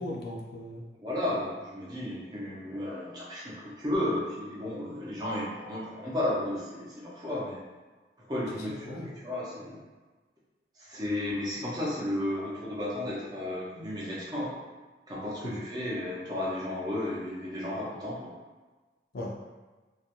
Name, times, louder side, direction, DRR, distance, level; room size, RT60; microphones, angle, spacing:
voice 1, 0.0-0.8 8.5-9.1 15.4-15.6 19.1-19.4, left 1 dB, 60° left, -1 dB, 0.4 m, -38 dB
voice 2, 1.0-7.6 8.2-9.8 10.8-14.5 15.1-18.3, left 1 dB, 20° right, -6 dB, 0.5 m, -33 dB
2.3 x 2.1 x 2.8 m, 1.3 s
head